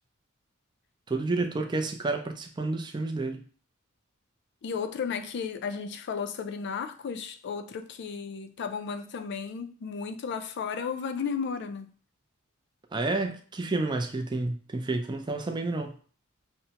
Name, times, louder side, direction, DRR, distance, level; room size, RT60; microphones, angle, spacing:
voice 1, 1.1-3.4 12.9-15.9, right 2 dB, 20° right, 0.4 m, -30 dB
voice 2, 4.6-11.9, left 6 dB, 55° left, 0.4 m, -34 dB
5.5 x 2.0 x 2.8 m
head